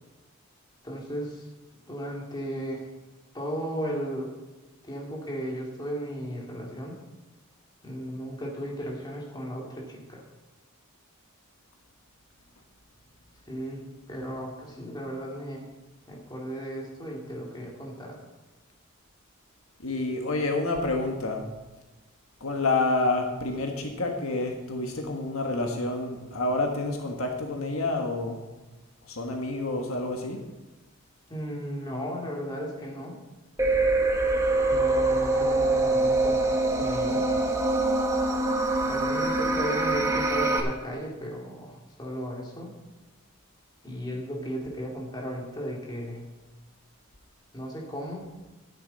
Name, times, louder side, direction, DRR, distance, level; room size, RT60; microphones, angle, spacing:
voice 1, 0.8-1.4 1.9-2.9 3.3-4.3 4.8-7.0 7.8-10.2 13.5-13.8 14.1-15.7 16.1-18.2 31.3-33.2 34.7-37.2 38.8-42.7 43.8-46.2 47.5-48.3, equal, 20° left, -2 dB, 2.6 m, -35 dB
voice 2, 19.8-21.4 22.4-28.4 29.1-30.4, left 2 dB, 75° left, 2 dB, 1.5 m, -28 dB
sound 1, 33.6-40.6, right 2 dB, 15° right, 1.3 m, -24 dB
12.5 x 10.0 x 4.1 m, 1.2 s
head